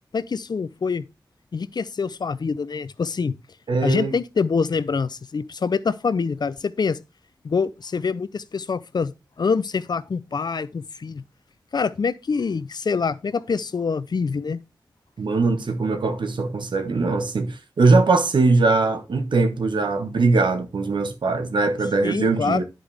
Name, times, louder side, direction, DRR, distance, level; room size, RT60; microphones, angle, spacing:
voice 1, 0.1-1.0 1.5-3.3 3.8-7.0 7.4-9.1 9.4-11.2 11.7-14.6 22.0-22.6, left 5 dB, 60° left, 0.5 m, -25 dB
voice 2, 3.7-4.2 15.2-22.6, right 3 dB, 75° right, 1.1 m, -21 dB
10.0 x 5.2 x 3.3 m
cardioid pair, 50°, 8 cm